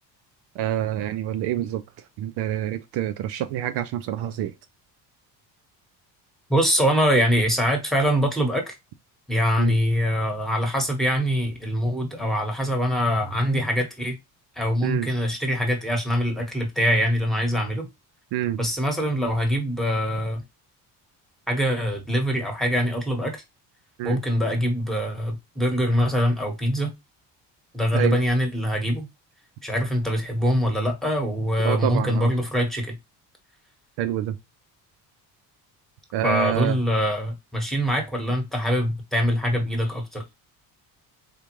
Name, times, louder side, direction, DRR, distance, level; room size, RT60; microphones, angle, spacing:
voice 1, 0.6-1.8 2.2-4.5 9.6-9.8 14.8-15.1 18.3-18.6 24.0-24.2 27.9-28.2 31.6-32.3 34.0-34.4 36.1-36.8, right 12 dB, 65° right, 0.5 m, -27 dB
voice 2, 6.5-8.7 9.3-14.2 14.6-17.9 18.6-20.4 21.5-23.4 24.0-26.9 27.7-29.1 29.6-33.0 36.2-40.2, equal, ahead, 1.2 m, -23 dB
3.6 x 2.5 x 3.0 m
supercardioid pair, 75°, 43 cm